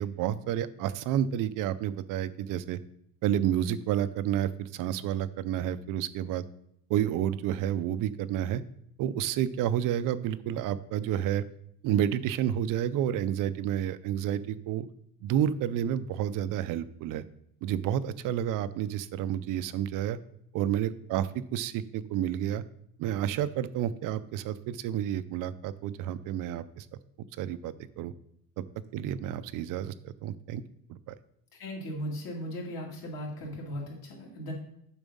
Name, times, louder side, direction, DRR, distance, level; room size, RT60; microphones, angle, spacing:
voice 1, 0.0-2.8 3.2-6.4 6.9-8.6 9.0-11.4 11.8-14.9 15.2-17.2 17.6-20.2 20.5-22.6 23.0-26.9 27.4-28.1 28.6-28.7 28.9-30.6 30.9-31.1, right 10 dB, 45° right, 14 dB, 0.5 m, -30 dB
voice 2, 31.5-34.5, equal, 50° left, -2 dB, 2.4 m, -37 dB
7.1 x 6.0 x 5.3 m, 0.73 s
cardioid pair, 155°, 46 cm